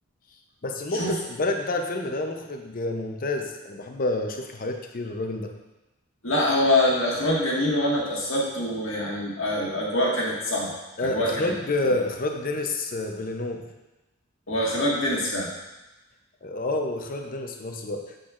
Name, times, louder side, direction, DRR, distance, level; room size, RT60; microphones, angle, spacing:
voice 1, 0.6-5.5 11.0-13.7 16.4-18.2, left 2 dB, 45° left, 4 dB, 0.6 m, -29 dB
voice 2, 6.2-11.5 11.8-11.9 14.5-15.5, left 1 dB, 75° left, -4 dB, 1.7 m, -25 dB
7.7 x 6.3 x 2.5 m, 1.0 s
head